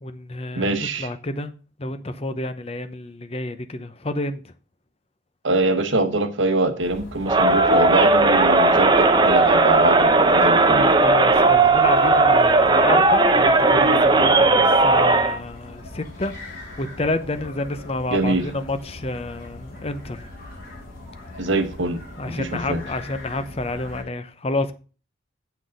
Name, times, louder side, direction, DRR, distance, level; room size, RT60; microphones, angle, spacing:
voice 1, 0.0-1.5 1.8-4.5 11.0-20.3 22.2-24.7, left 2 dB, 30° left, 0.8 m, -29 dB
voice 2, 0.6-1.1 5.4-10.9 18.1-18.4 21.4-22.0 22.2-22.8, right 2 dB, 75° right, 1.2 m, -23 dB
sound 1, 6.8-24.0, left 1 dB, 50° left, 4.4 m, -41 dB
Crowd, 7.3-15.4, right 3 dB, 25° right, 0.8 m, -16 dB
8.3 x 6.3 x 5.3 m
head